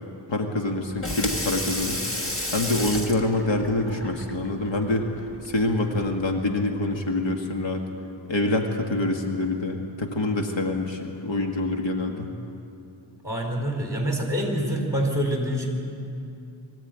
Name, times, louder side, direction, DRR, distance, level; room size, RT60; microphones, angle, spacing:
voice 1, 0.3-5.1 5.4-7.8 8.3-12.3, left 2 dB, 65° left, 3 dB, 1.9 m, -26 dB
Water tap faucet / Sink (filling or washing), 0.8-6.3, left 1 dB, 25° left, 1.8 m, -33 dB
voice 2, 13.2-15.7, equal, 5° right, 1 dB, 4.4 m, -26 dB
22.5 x 15.0 x 9.2 m, 2.7 s
wide cardioid pair, 110°, 49 cm